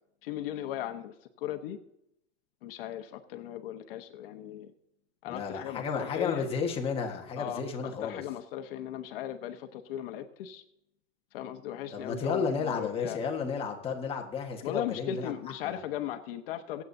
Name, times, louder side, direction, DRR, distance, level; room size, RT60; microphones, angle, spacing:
voice 1, 0.2-1.8 2.6-4.7 5.2-6.5 7.4-10.6 11.3-13.2 14.6-16.8, left 11 dB, 55° left, 7 dB, 1.2 m, -37 dB
voice 2, 5.3-8.2 11.9-15.3 15.6-15.8, left 5 dB, 15° left, 1 dB, 1.5 m, -33 dB
25.5 x 8.6 x 2.7 m, 0.80 s
supercardioid pair, 170°, 33 cm